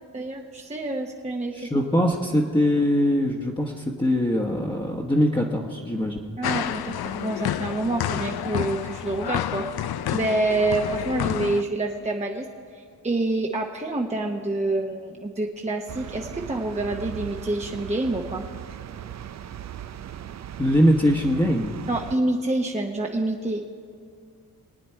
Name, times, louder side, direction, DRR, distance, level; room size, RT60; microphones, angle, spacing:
voice 1, 0.1-1.7 6.4-9.6 10.1-12.5 12.7-18.4 21.9-23.7, right 2 dB, 15° right, 0 dB, 1.0 m, -27 dB
voice 2, 1.5-6.4 20.6-21.7, equal, 10° left, -2 dB, 1.2 m, -22 dB
sound 1, 6.4-11.6, left 10 dB, 70° left, 0.6 m, -29 dB
sound 2, 15.9-22.2, right 10 dB, 45° right, 0.5 m, -38 dB
23.0 x 9.2 x 4.5 m, 2.2 s
cardioid pair, 80°, 39 cm